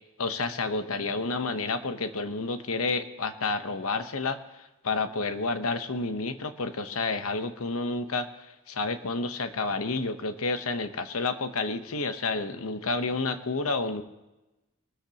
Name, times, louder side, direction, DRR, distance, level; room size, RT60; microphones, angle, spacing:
voice 1, 0.2-4.4 4.8-8.3 8.7-14.0, left 3 dB, 75° left, 9 dB, 1.0 m, -30 dB
24.5 x 13.5 x 2.9 m, 1.0 s
head